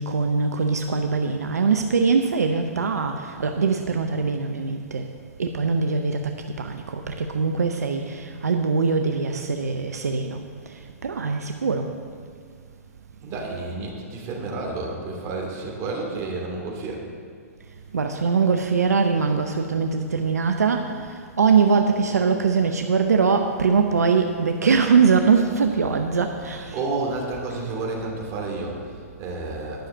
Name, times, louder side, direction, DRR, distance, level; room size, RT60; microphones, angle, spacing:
voice 1, 0.0-5.1 5.4-11.9 17.9-26.9, right 5 dB, 85° right, 5 dB, 0.7 m, -22 dB
voice 2, 13.2-17.1 26.4-29.9, right 3 dB, 35° right, -1 dB, 2.7 m, -31 dB
10.5 x 6.5 x 7.1 m, 2.1 s
hypercardioid pair, 120°, 8 cm